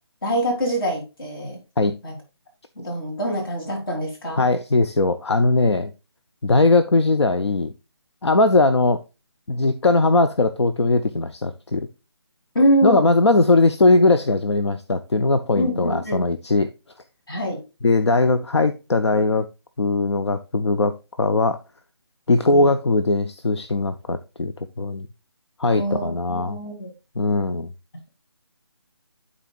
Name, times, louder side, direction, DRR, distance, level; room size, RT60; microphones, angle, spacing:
voice 1, 0.2-1.6 2.0-2.2 2.8-4.5 12.6-13.1 15.6-16.3 17.3-17.6 22.5-22.7 25.8-26.9, equal, 55° left, 3.5 m, -24 dB
voice 2, 4.4-5.9 6.4-7.7 8.2-9.0 9.5-11.9 12.8-16.7 17.8-19.5 19.8-21.6 22.3-24.5 24.8-25.1 25.6-26.6 27.2-27.7, left 3 dB, 80° left, 0.7 m, -19 dB
12.0 x 4.2 x 2.4 m
figure-of-eight pair, 155°, 14 cm